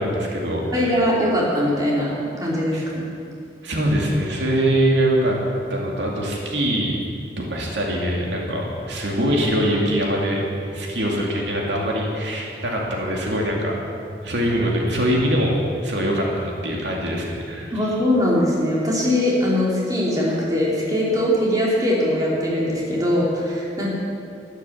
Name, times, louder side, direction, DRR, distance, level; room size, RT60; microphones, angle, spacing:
voice 1, 0.0-0.8 2.7-2.8 3.6-5.4 5.7-7.0 7.4-10.4 10.7-13.8 14.2-15.6 15.8-17.9, equal, 90° right, -2 dB, 2.5 m, -23 dB
voice 2, 0.7-3.1 17.7-23.9, left 1 dB, 20° right, -5 dB, 3.0 m, -21 dB
12.0 x 12.0 x 7.2 m, 2.5 s
head